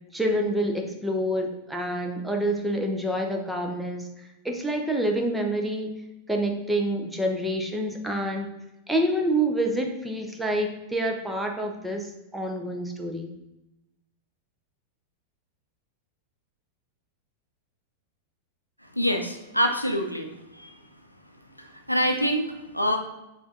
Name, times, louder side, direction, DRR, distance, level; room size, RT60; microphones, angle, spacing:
voice 1, 0.1-4.0 4.4-5.9 6.3-8.5 8.9-12.0 12.3-13.3, right 1 dB, 5° right, 2 dB, 0.6 m, -27 dB
voice 2, 19.0-20.8 21.6-23.0, equal, 90° left, 4 dB, 0.5 m, -26 dB
4.7 x 2.6 x 3.7 m, 0.95 s
figure-of-eight pair, 90°, 0 cm